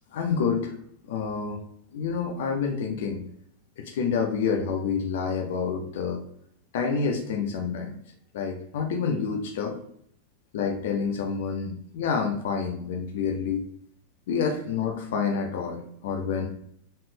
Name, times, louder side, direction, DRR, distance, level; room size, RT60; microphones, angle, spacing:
voice 1, 0.1-0.7 1.1-1.6 1.9-3.2 3.8-6.2 6.7-7.9 8.3-9.8 10.5-13.6 14.3-16.5, left 5 dB, 55° left, 3 dB, 0.7 m, -28 dB
4.2 x 3.7 x 3.2 m, 0.66 s
figure-of-eight pair, 90°, 0 cm